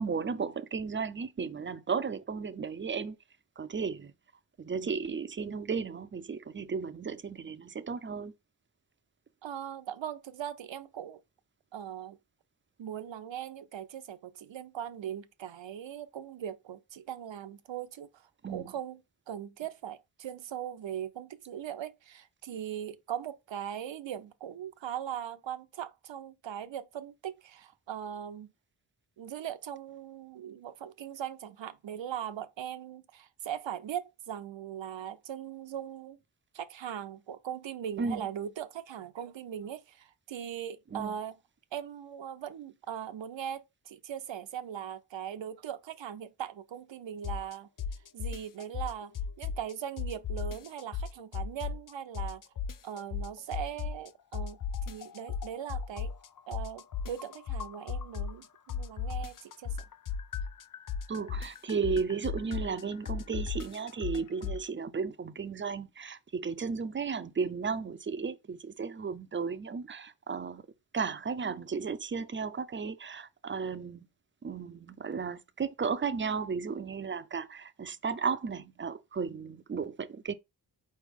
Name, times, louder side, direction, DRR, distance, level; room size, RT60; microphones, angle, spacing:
voice 1, 0.0-3.2 3.6-4.1 4.6-8.3 18.4-18.7 38.0-38.2 40.9-41.1 61.1-70.6 70.9-74.1 74.4-80.3, right 5 dB, 30° right, 0.3 m, -34 dB
voice 2, 9.4-11.2 11.7-12.2 12.8-18.1 18.5-19.0 19.3-28.5 29.2-36.2 36.5-41.4 41.7-47.7 48.1-52.4 52.8-56.1 56.5-59.8, right 9 dB, 80° right, 0.6 m, -40 dB
sound 1, 47.2-47.5 47.8-49.7 50.0-51.9 52.1-54.1 54.3-58.4 58.7-64.6, left 6 dB, 50° left, 0.4 m, -35 dB
4.5 x 3.2 x 3.5 m
wide cardioid pair, 110°, 44 cm